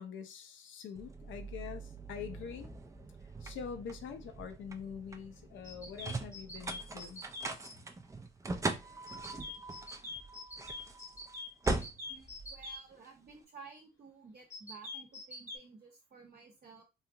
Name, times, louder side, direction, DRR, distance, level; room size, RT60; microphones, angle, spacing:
voice 1, 0.0-2.7 3.4-7.2, left 7 dB, 75° left, 0.6 m, -44 dB
sound 1, 0.9-13.3, right 3 dB, 15° right, 0.4 m, -41 dB
sound 2, 5.6-7.7 9.1-12.8 14.5-15.6, left 2 dB, 15° left, 0.9 m, -44 dB
voice 2, 12.1-16.8, right 5 dB, 50° right, 0.9 m, -54 dB
3.1 x 2.7 x 2.4 m
cardioid pair, 90°, 20 cm